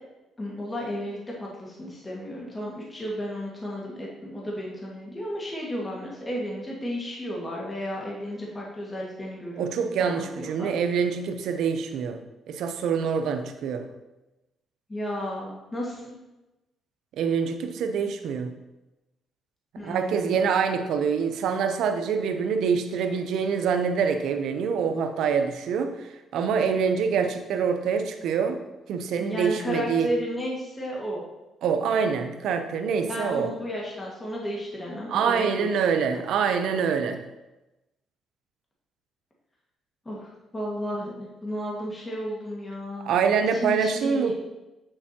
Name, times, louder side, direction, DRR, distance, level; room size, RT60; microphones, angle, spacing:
voice 1, 0.4-9.7 10.0-10.7 14.9-16.2 19.8-20.4 29.2-31.2 33.1-35.7 40.1-40.2 40.5-43.1 43.6-44.3, equal, 20° left, -4 dB, 1.7 m, -33 dB
voice 2, 9.6-12.2 12.5-13.9 17.2-18.5 19.8-28.6 28.9-30.1 31.6-33.5 35.1-37.2 43.0-44.3, right 6 dB, 80° right, 7 dB, 0.7 m, -25 dB
8.4 x 6.7 x 2.9 m, 1.0 s
cardioid pair, 90°, 0 cm